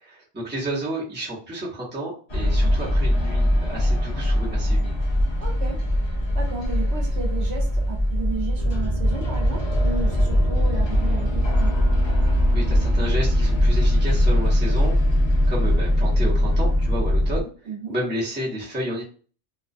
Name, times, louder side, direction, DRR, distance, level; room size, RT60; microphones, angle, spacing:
voice 1, 0.0-5.0 12.5-19.0, right 1 dB, 10° right, -6 dB, 0.8 m, -31 dB
sound 1, 2.3-17.4, equal, 40° left, 0.4 m, -21 dB
voice 2, 2.4-2.8 5.4-5.8 6.3-11.8 17.7-17.9, right 4 dB, 70° right, 1 dB, 0.9 m, -34 dB
2.3 x 2.2 x 2.5 m, 0.40 s
omnidirectional pair, 1.2 m